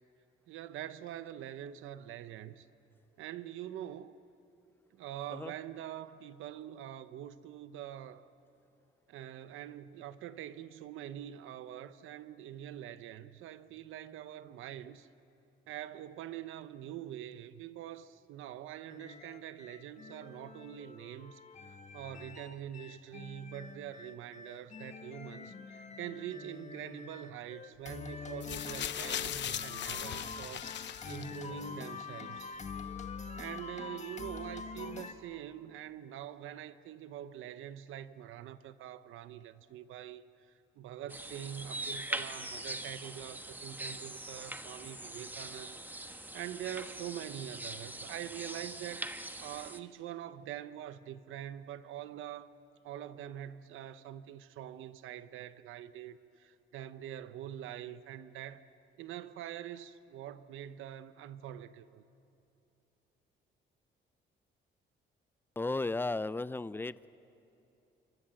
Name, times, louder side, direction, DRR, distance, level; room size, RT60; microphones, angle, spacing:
voice 1, 0.5-2.7 3.2-4.2 4.9-8.3 9.1-15.1 15.7-21.4 21.7-30.7 31.1-32.6 33.4-49.1 49.4-52.5 52.8-58.7 59.0-62.0, right 11 dB, 85° right, 0.9 m, -44 dB
sound 1, 18.9-35.1, left 4 dB, 35° left, 1.7 m, -45 dB
sound 2, 28.4-31.7 32.5-32.6, left 10 dB, 65° left, 0.9 m, -39 dB
sound 3, 41.1-49.8, right 1 dB, 10° right, 1.3 m, -42 dB
voice 2, 65.6-67.1, left 2 dB, 10° left, 0.5 m, -34 dB
27.0 x 24.0 x 7.7 m
cardioid pair, 90°, 20 cm